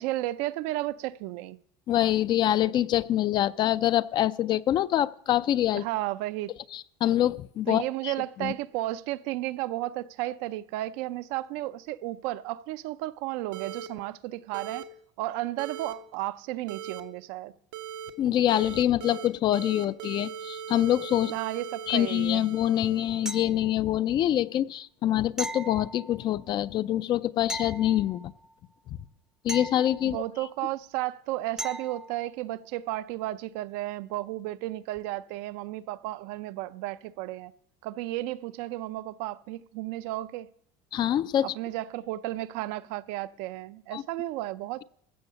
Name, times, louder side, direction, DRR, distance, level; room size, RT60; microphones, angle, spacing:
voice 1, 0.0-1.6 5.7-6.5 7.7-14.9 15.2-17.5 21.3-22.4 30.0-37.5 37.8-40.5 41.4-44.8, right 16 dB, 70° right, 0.5 m, -33 dB
voice 2, 1.9-5.8 6.7-8.1 8.4-8.5 18.2-21.3 21.9-28.3 29.4-30.2 40.9-41.5 43.9-44.0, left 12 dB, 40° left, 0.4 m, -25 dB
sound 1, 13.5-13.9 14.5-14.8 15.6-15.9 16.7-17.0 17.7-18.1 18.5-19.3 19.5-23.3, right 8 dB, 90° right, 1.0 m, -39 dB
sound 2, 23.3-24.0 25.4-26.5 27.5-28.5 29.5-30.5 31.6-32.2 35.0-35.1, right 2 dB, 5° right, 0.6 m, -39 dB
15.0 x 6.3 x 6.8 m
supercardioid pair, 125°, 12 cm